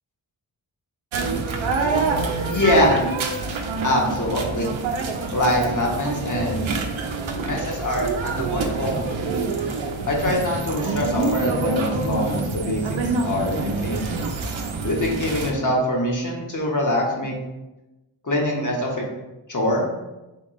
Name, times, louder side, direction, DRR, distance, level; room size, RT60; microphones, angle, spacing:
sound 1, 1.1-15.5, right 3 dB, 85° right, 0.6 m, -26 dB
voice 1, 2.5-3.0 3.8-4.7 5.3-6.7 7.4-8.9 10.1-14.1 14.8-17.4 18.2-19.0 19.5-19.8, left 1 dB, 40° left, -2 dB, 1.3 m, -23 dB
4.3 x 3.5 x 3.2 m, 1.0 s
cardioid pair, 45°, 46 cm